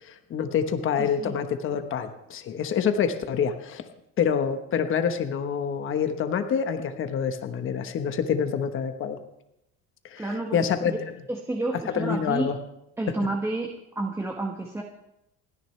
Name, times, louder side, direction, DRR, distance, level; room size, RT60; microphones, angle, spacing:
voice 1, 0.0-3.8 4.2-9.2 10.0-11.0 11.9-12.6, left 7 dB, 40° left, 7 dB, 1.2 m, -27 dB
voice 2, 1.0-1.4 10.2-11.0 11.3-12.5 13.0-14.8, right 2 dB, 10° right, 1 dB, 1.4 m, -30 dB
29.0 x 10.0 x 3.3 m, 0.86 s
cardioid pair, 135°, 32 cm